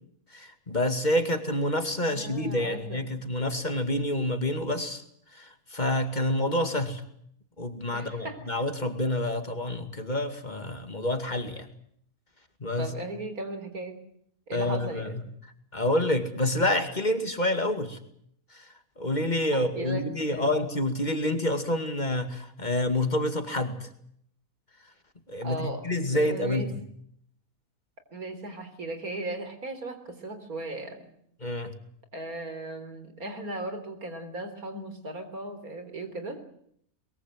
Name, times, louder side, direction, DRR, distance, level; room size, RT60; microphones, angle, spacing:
voice 1, 0.3-5.0 5.3-7.0 7.6-11.7 12.6-12.9 14.5-15.1 15.7-18.0 18.5-18.7 19.0-23.9 25.3-26.8 31.4-31.7, left 1 dB, 30° left, 7 dB, 2.4 m, -28 dB
voice 2, 2.1-3.0 7.9-8.5 12.8-14.0 14.5-15.2 19.5-20.6 25.4-25.8 26.1-26.7 28.1-31.1 32.1-36.4, right 2 dB, 70° right, 9 dB, 4.2 m, -37 dB
23.0 x 22.0 x 7.8 m, 0.68 s
omnidirectional pair, 1.6 m